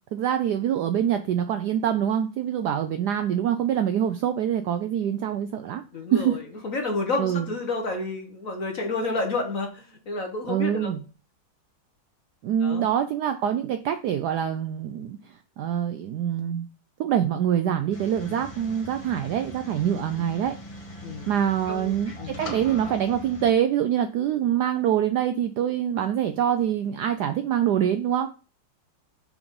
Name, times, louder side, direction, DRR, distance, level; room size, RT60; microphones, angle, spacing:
voice 1, 0.1-5.8 6.1-6.4 7.2-7.5 10.5-11.0 12.4-16.7 17.0-20.6 21.3-28.3, right 9 dB, 80° right, 8 dB, 0.9 m, -25 dB
voice 2, 5.9-10.9 12.6-12.8 18.2-18.4 20.1-20.3 21.0-21.3 21.7-21.9 22.2-22.4, left 3 dB, 50° left, 3 dB, 1.2 m, -30 dB
sound 1, 17.9-23.5, left 1 dB, 25° left, 0.8 m, -40 dB
5.9 x 3.9 x 5.2 m, 0.36 s
omnidirectional pair, 2.2 m